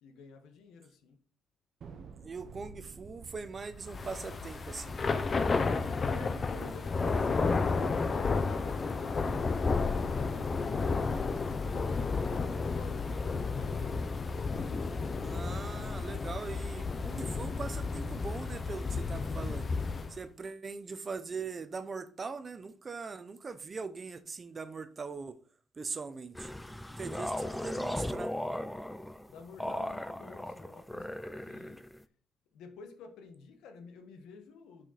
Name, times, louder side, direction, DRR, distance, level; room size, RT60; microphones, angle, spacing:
voice 1, 0.0-1.2 6.1-11.9 12.3-14.0 27.4-28.0 29.3-31.8 32.5-34.9, left 5 dB, 90° left, 1.2 m, -50 dB
Thunder, 1.8-12.4, right 5 dB, 60° right, 0.9 m, -54 dB
voice 2, 2.2-5.0 15.2-19.7 20.1-25.4 25.8-26.5 27.0-28.3, right 4 dB, 35° right, 0.7 m, -41 dB
Thunder / Rain, 3.9-20.2, left 4 dB, 35° left, 0.7 m, -32 dB
sound 1, 26.3-32.0, left 1 dB, 5° left, 0.5 m, -37 dB
6.1 x 5.1 x 4.2 m
cardioid pair, 90°, 0 cm